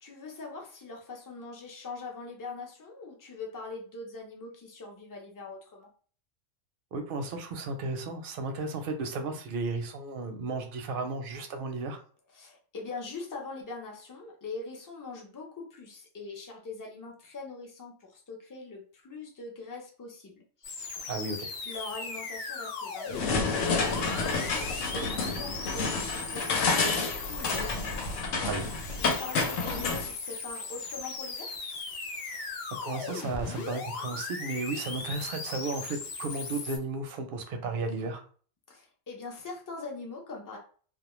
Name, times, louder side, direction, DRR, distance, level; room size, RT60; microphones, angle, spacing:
voice 1, 0.0-5.9 12.3-21.1 21.6-27.7 28.9-31.5 38.7-40.6, left 3 dB, 30° left, 0 dB, 0.4 m, -42 dB
voice 2, 6.9-12.0 21.1-21.5 28.4-28.7 32.3-32.5 32.8-38.2, right 3 dB, 60° right, 5 dB, 0.6 m, -34 dB
sound 1, 20.6-36.8, left 4 dB, 60° left, 0.8 m, -38 dB
sound 2, 23.1-30.1, left 4 dB, 90° left, 0.9 m, -29 dB
2.2 x 2.1 x 3.0 m, 0.43 s
omnidirectional pair, 1.3 m